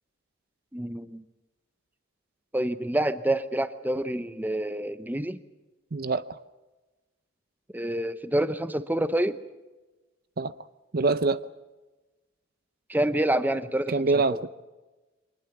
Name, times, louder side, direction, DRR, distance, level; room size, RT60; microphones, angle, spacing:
voice 1, 0.7-1.2 2.5-5.4 7.7-9.3 12.9-14.4, right 1 dB, 10° right, 12 dB, 0.8 m, -27 dB
voice 2, 5.9-6.2 10.4-10.5 10.9-11.4 13.9-14.5, right 3 dB, 50° right, 14 dB, 0.7 m, -24 dB
24.5 x 20.0 x 7.2 m, 1.1 s
head